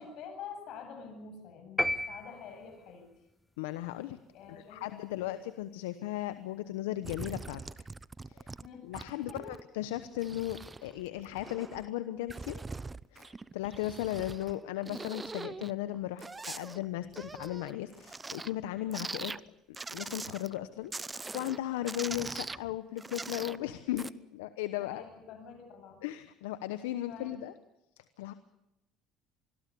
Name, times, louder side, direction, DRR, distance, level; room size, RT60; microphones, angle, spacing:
voice 1, 0.0-3.1 4.3-5.4 8.6-8.9 9.2-9.6 24.8-26.0 27.1-27.4, left 6 dB, 65° left, 7 dB, 7.9 m, -47 dB
sound 1, 1.8-3.0, left 1 dB, 10° left, 1.1 m, -33 dB
voice 2, 3.6-4.2 4.5-7.6 8.3-8.5 8.8-12.6 13.1-19.3 19.9-25.0 26.0-27.5 28.2-28.3, left 14 dB, 85° left, 12 dB, 1.0 m, -36 dB
sound 2, 7.0-8.7 8.9-9.6 10.0-11.9 12.3-14.5 14.8-18.6 18.9-19.4 19.7-20.6 20.9-21.6 21.9-23.6 23.9-24.1, right 3 dB, 20° right, 0.8 m, -42 dB
25.5 x 21.5 x 7.0 m, 0.90 s
supercardioid pair, 75°, 0 cm